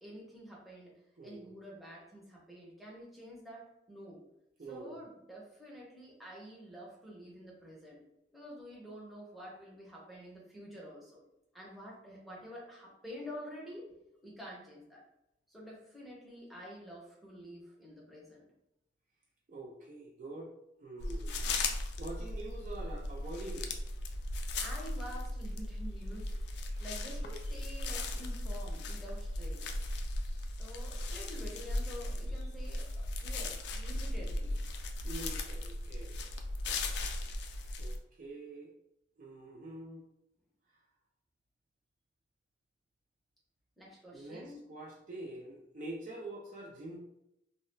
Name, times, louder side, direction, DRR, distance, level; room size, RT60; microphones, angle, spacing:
voice 1, 0.0-0.9 1.2-4.2 4.7-8.0 8.3-11.2 11.5-13.9 14.2-15.0 15.5-18.4 24.6-29.7 30.6-34.8 43.8-44.6, equal, ahead, -5 dB, 0.6 m, -48 dB
voice 2, 1.2-1.6 4.6-5.0 19.5-20.5 20.8-21.5 22.0-23.7 35.0-36.2 37.8-38.7 39.2-40.0 40.7-40.8 44.1-47.0, right 2 dB, 45° right, -1 dB, 0.3 m, -45 dB
sound 1, 21.0-38.0, left 2 dB, 70° left, 0.3 m, -37 dB
2.2 x 2.1 x 3.1 m, 0.83 s
head